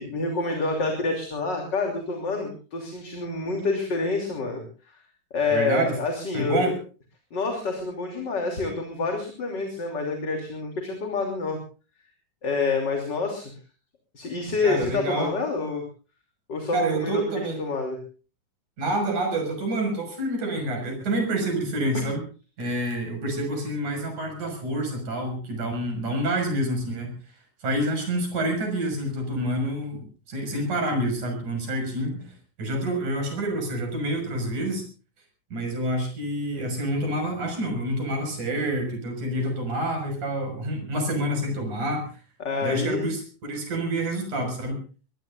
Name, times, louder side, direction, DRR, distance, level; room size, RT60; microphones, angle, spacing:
voice 1, 0.0-5.0 5.3-6.7 7.3-11.6 12.4-13.5 14.1-15.8 16.5-17.2 17.6-18.0 21.9-22.1 42.4-43.1, left 3 dB, 30° left, 3 dB, 3.4 m, -27 dB
voice 2, 5.5-5.9 6.3-6.8 14.6-15.3 16.7-17.6 18.8-22.2 22.6-27.1 27.6-34.8 35.5-42.2 42.6-44.8, right 1 dB, 60° right, 4 dB, 7.5 m, -28 dB
22.5 x 22.0 x 2.6 m, 0.36 s
omnidirectional pair, 3.9 m